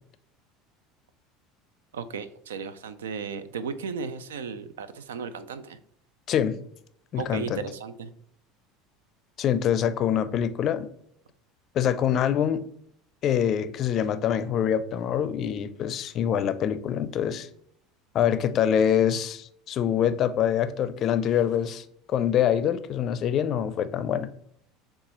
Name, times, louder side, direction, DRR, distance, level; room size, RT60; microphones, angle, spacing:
voice 1, 1.9-5.8 7.1-8.1, right 6 dB, 90° right, 13 dB, 0.3 m, -35 dB
voice 2, 6.3-6.6 7.1-7.6 9.4-10.9 11.7-12.6 13.2-17.5 18.1-21.8 22.1-24.3, left 9 dB, 50° left, 13 dB, 0.4 m, -25 dB
6.6 x 2.3 x 3.0 m, 0.67 s
hypercardioid pair, 85°, 0 cm